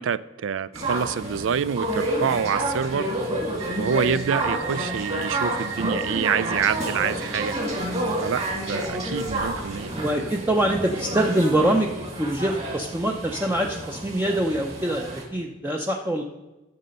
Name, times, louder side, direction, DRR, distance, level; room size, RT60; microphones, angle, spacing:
voice 1, 0.0-3.1 3.8-7.6 8.2-10.3, right 7 dB, 70° right, 18 dB, 0.4 m, -27 dB
sound 1, 0.7-15.2, right 1 dB, 35° right, 2.3 m, -29 dB
voice 2, 9.9-11.9 12.2-16.2, right 1 dB, 10° right, 1 dB, 0.6 m, -24 dB
11.5 x 6.7 x 5.3 m, 1.1 s
head